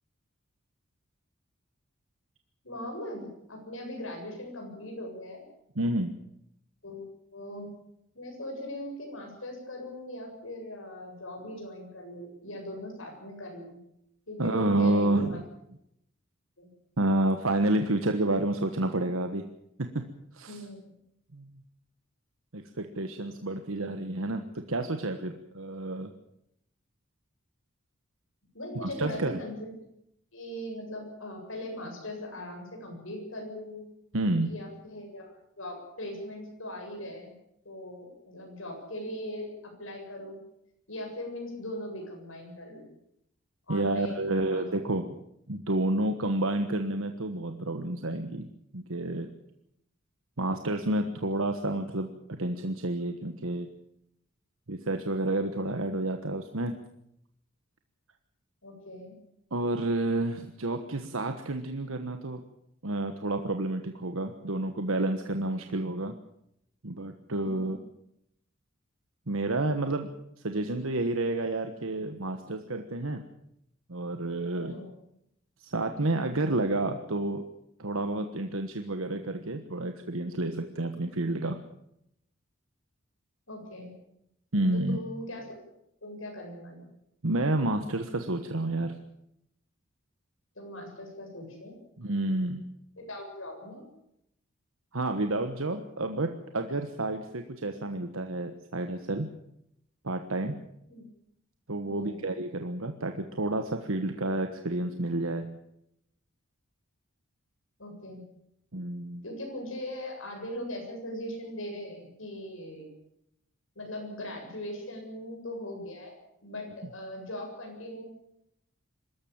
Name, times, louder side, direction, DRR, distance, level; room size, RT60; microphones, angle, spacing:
voice 1, 2.6-5.4 6.8-7.7 8.1-13.8 14.3-15.4 16.6-16.7 20.5-20.9 28.5-29.7 30.3-33.8 34.5-37.3 37.6-40.4 40.9-42.9 43.7-44.6 58.6-59.1 67.4-67.8 74.6-74.9 83.5-83.9 84.7-85.6 86.0-86.9 90.6-91.8 93.0-93.9 100.9-101.0 101.8-102.3 107.8-108.2 109.2-112.9 113.7-116.2 116.4-118.0, left 1 dB, 75° left, 1 dB, 7.9 m, -40 dB
voice 2, 5.7-6.1 14.4-15.4 17.0-19.5 19.8-20.0 20.3-20.7 21.3-21.5 22.5-26.1 28.8-29.4 34.1-34.6 43.7-45.2 45.5-49.3 50.4-52.1 52.4-53.7 54.7-56.8 59.5-62.4 62.8-66.1 66.8-67.8 69.3-70.1 70.4-73.2 73.9-74.8 75.6-77.4 77.8-81.6 84.5-85.0 87.2-89.0 92.0-92.6 94.9-99.3 100.0-100.5 101.7-105.6 108.7-109.2, right 2 dB, 80° right, 6 dB, 1.3 m, -30 dB
24.0 x 13.5 x 8.9 m, 0.78 s
head